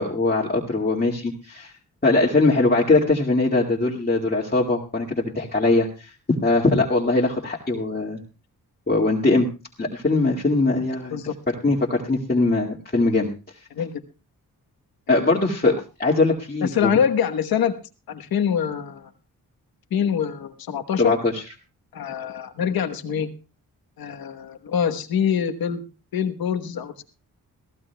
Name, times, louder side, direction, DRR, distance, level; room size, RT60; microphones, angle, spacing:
voice 1, 0.0-1.7 2.0-8.2 8.9-9.5 9.8-11.2 11.5-13.3 15.1-16.9 21.0-21.4, left 2 dB, 25° left, -3 dB, 2.1 m, -21 dB
voice 2, 16.6-17.8 18.1-19.1 19.9-21.2 21.9-23.3 24.0-25.8 26.1-27.0, left 8 dB, 90° left, 7 dB, 1.2 m, -24 dB
23.0 x 15.0 x 2.3 m, 0.31 s
cardioid pair, 65°, 35 cm